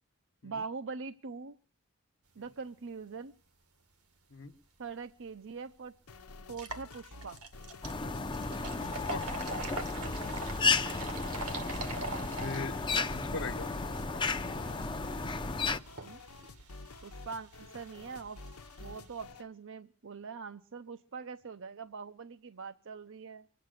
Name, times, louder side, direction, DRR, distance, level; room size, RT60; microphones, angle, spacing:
voice 1, 0.4-1.6 2.4-3.3 4.8-5.9 6.5-7.4 16.0-16.2 17.0-18.4 18.8-23.5, right 5 dB, 60° right, 9 dB, 0.7 m, -43 dB
sound 1, 5.2-5.3 5.7-5.8 6.4-19.2, right 3 dB, 85° right, 2.0 m, -45 dB
sound 2, 6.1-19.5, left 2 dB, 90° left, 1.0 m, -50 dB
sound 3, 7.8-15.8, left 4 dB, 20° left, 0.7 m, -33 dB
voice 2, 8.8-9.3 12.4-13.7 14.1-14.2, left 4 dB, 60° left, 9 dB, 1.2 m, -41 dB
24.5 x 8.7 x 6.5 m, 0.42 s
head